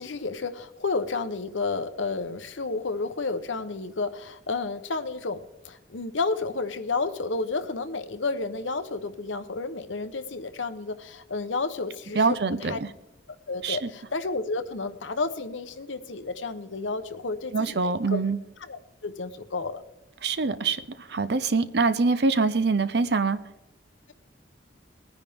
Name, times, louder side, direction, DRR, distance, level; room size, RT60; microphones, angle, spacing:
voice 1, 0.0-12.4 12.7-12.8 13.5-18.2 18.6-19.8, left 3 dB, 85° left, 10 dB, 1.0 m, -31 dB
voice 2, 12.2-12.8 13.6-13.8 17.5-18.4 20.2-23.4, right 4 dB, 60° right, 12 dB, 0.7 m, -24 dB
20.0 x 10.0 x 3.6 m, 0.92 s
head